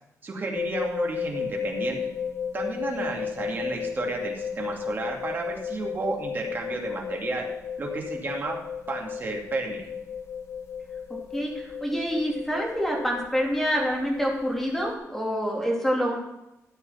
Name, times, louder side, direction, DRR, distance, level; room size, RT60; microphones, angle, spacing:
voice 1, 0.2-2.0 2.5-7.4 7.8-8.6 8.9-9.8, right 3 dB, 35° right, 0 dB, 2.5 m, -32 dB
sound 1, 0.5-14.9, left 7 dB, 60° left, 2.1 m, -34 dB
voice 2, 11.3-16.2, equal, 5° left, -2 dB, 3.0 m, -27 dB
13.0 x 8.3 x 5.8 m, 0.89 s
wide cardioid pair, 155°, 6 cm